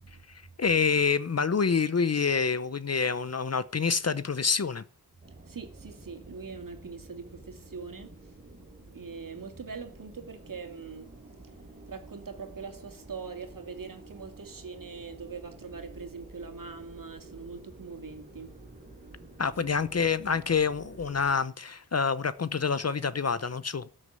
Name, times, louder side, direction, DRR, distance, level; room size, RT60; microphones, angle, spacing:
voice 1, 0.3-4.8 19.4-23.9, left 5 dB, 40° left, 0.7 m, -27 dB
sound 1, 5.2-21.4, right 2 dB, 25° right, 3.6 m, -50 dB
voice 2, 5.2-18.9, right 5 dB, 55° right, 2.5 m, -43 dB
13.0 x 6.5 x 8.8 m
wide cardioid pair, 125°, 38 cm